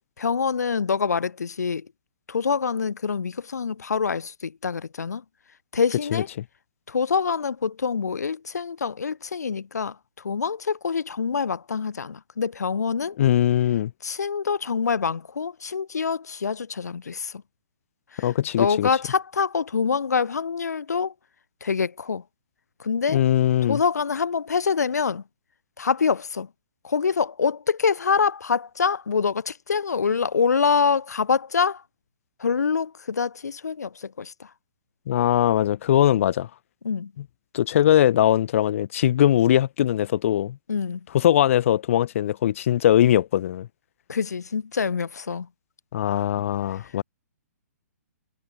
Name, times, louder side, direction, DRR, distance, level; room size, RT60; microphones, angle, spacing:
voice 1, 0.2-1.9 2.3-5.2 5.7-6.3 6.9-13.2 14.0-17.4 18.1-18.3 18.6-21.1 21.6-22.2 22.8-23.2 23.7-25.2 25.8-26.5 26.8-31.8 32.4-34.5 36.8-37.1 40.7-41.1 44.1-45.5 46.7-47.0, left 5 dB, 80° left, 1.9 m, -25 dB
voice 2, 13.2-13.9 18.2-18.9 23.1-23.8 35.1-36.5 37.5-40.6 41.1-43.7 45.9-47.0, left 11 dB, 55° left, 1.2 m, -20 dB
hypercardioid pair, 130°, 9 cm